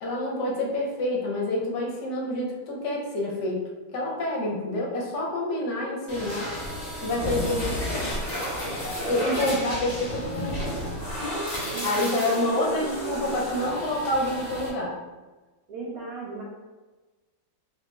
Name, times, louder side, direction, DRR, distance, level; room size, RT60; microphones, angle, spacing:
voice 1, 0.0-3.6 3.9-6.5 7.0-8.1 9.1-10.9 11.8-15.0, left 1 dB, 70° left, -2 dB, 1.2 m, -28 dB
voice 2, 4.4-4.8 9.0-9.5 11.6-12.4 12.8-13.9 15.7-16.4, right 4 dB, 70° right, -5 dB, 0.8 m, -38 dB
sound 1, 6.1-14.7, equal, 35° left, 0.7 m, -32 dB
3.1 x 2.9 x 3.3 m, 1.2 s
omnidirectional pair, 2.0 m